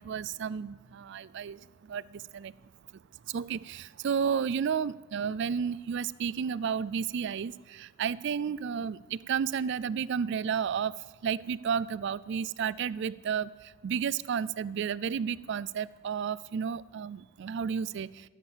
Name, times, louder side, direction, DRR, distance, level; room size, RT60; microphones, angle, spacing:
voice 1, 0.0-2.5 3.3-18.3, right 7 dB, 55° right, 19 dB, 0.3 m, -32 dB
12.0 x 8.3 x 7.2 m, 1.4 s
head